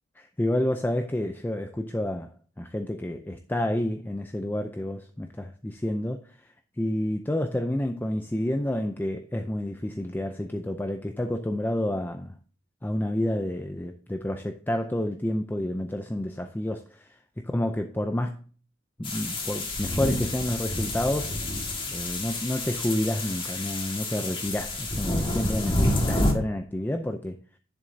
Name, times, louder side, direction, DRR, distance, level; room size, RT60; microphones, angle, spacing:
voice 1, 0.2-12.4 12.8-17.2 17.5-18.4 19.0-21.4 21.9-27.4, left 1 dB, 10° left, 0.5 m, -29 dB
sound 1, 19.0-26.3, left 1 dB, 25° left, 1.7 m, -29 dB
10.5 x 6.8 x 2.7 m
head